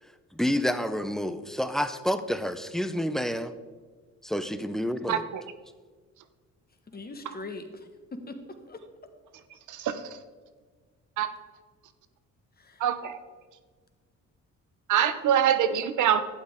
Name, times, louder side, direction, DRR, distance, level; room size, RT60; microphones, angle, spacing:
voice 1, 0.3-3.5 4.2-5.2, equal, ahead, 11 dB, 0.6 m, -29 dB
voice 2, 5.1-5.4 9.7-10.0 11.2-11.3 12.8-13.1 14.9-16.2, right 9 dB, 80° right, 11 dB, 0.9 m, -24 dB
voice 3, 6.9-8.8 12.6-12.8, left 2 dB, 30° left, 6 dB, 1.4 m, -41 dB
11.5 x 8.7 x 3.7 m, 1.5 s
cardioid pair, 90°, 30 cm